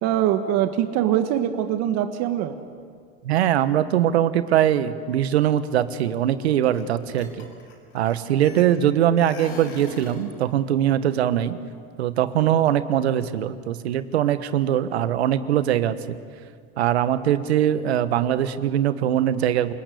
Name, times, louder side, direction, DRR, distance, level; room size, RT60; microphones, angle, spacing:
voice 1, 0.0-2.6, right 11 dB, 55° right, 7 dB, 1.7 m, -23 dB
voice 2, 3.2-7.5 7.9-11.5 12.0-16.0 16.8-19.7, right 11 dB, 85° right, 12 dB, 1.4 m, -22 dB
sound 1, 6.6-6.8 7.1-8.9 9.2-10.3, left 4 dB, 70° left, 7.6 m, -39 dB
28.5 x 20.0 x 8.5 m, 2.1 s
hypercardioid pair, 100°, 31 cm